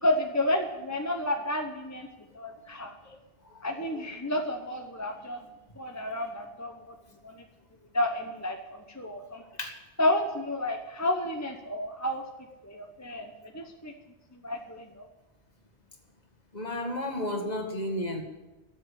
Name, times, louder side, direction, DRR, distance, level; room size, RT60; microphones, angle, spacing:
voice 1, 0.0-2.1 2.3-2.9 3.6-5.5 5.8-6.9 7.2-7.4 7.9-9.4 10.0-12.2 12.6-13.9 14.3-15.0, left 1 dB, 15° left, 3 dB, 0.9 m, -31 dB
voice 2, 16.5-18.2, left 1 dB, 40° left, 3 dB, 2.0 m, -32 dB
13.5 x 7.6 x 9.9 m, 1.1 s
omnidirectional pair, 1.1 m